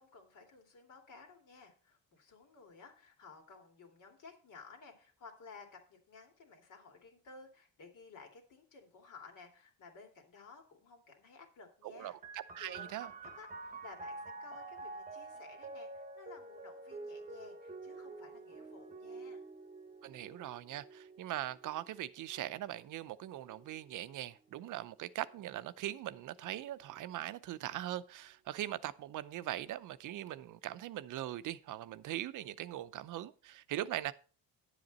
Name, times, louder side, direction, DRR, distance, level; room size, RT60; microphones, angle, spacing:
voice 1, 0.0-12.1 12.6-19.4, left 4 dB, 60° left, 2.7 m, -55 dB
voice 2, 11.8-13.1 20.0-34.1, right 13 dB, 60° right, 0.6 m, -41 dB
sound 1, 12.2-25.5 26.3-27.1, right 3 dB, 25° right, 1.0 m, -49 dB
10.0 x 7.9 x 4.1 m
cardioid pair, 125°, 35 cm